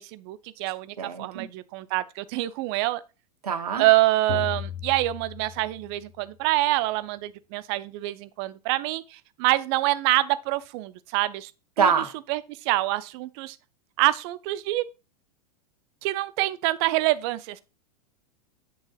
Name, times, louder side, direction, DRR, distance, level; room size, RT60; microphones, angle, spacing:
voice 1, 0.0-3.0 3.8-11.5 11.8-11.9 12.3-13.6 14.0-14.8 16.0-17.6, right 17 dB, 45° right, 0.5 m, -26 dB
voice 2, 1.0-1.5 3.4-3.8 11.8-12.1, right 6 dB, 75° right, 1.2 m, -25 dB
sound 1, 4.3-6.2, left 10 dB, 60° left, 1.0 m, -36 dB
8.0 x 6.3 x 2.2 m
figure-of-eight pair, 95°, 20 cm